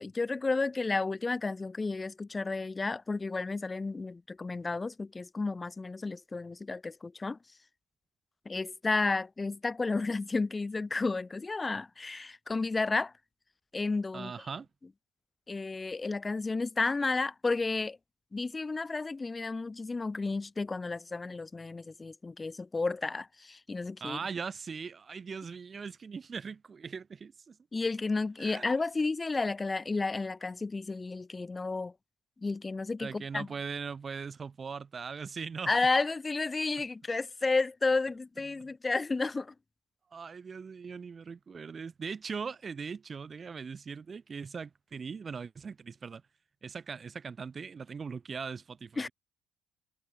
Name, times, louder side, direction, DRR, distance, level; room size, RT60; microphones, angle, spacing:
voice 1, 0.0-7.4 8.4-13.1 13.7-14.3 15.5-18.0 18.3-24.2 27.7-31.9 32.4-33.5 35.7-39.5 49.0-49.1, left 3 dB, 25° left, 1.1 m, -32 dB
voice 2, 14.1-14.7 24.0-27.6 28.4-28.8 33.0-35.7 38.5-38.6 40.1-46.2 46.6-49.1, right 5 dB, 40° right, 7.4 m, -40 dB
supercardioid pair, 70°, 0 cm